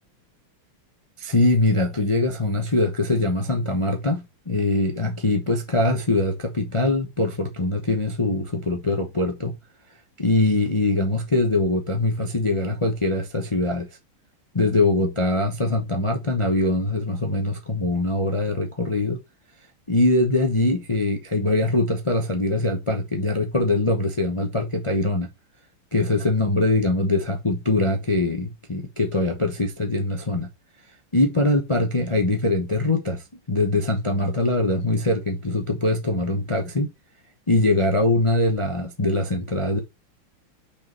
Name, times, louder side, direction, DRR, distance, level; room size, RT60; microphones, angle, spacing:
voice 1, 1.2-9.5 10.2-13.9 14.5-19.2 19.9-25.3 25.9-30.5 31.1-36.9 37.5-39.8, left 2 dB, 20° left, 0.8 m, -22 dB
6.2 x 5.1 x 4.4 m
omnidirectional pair, 2.4 m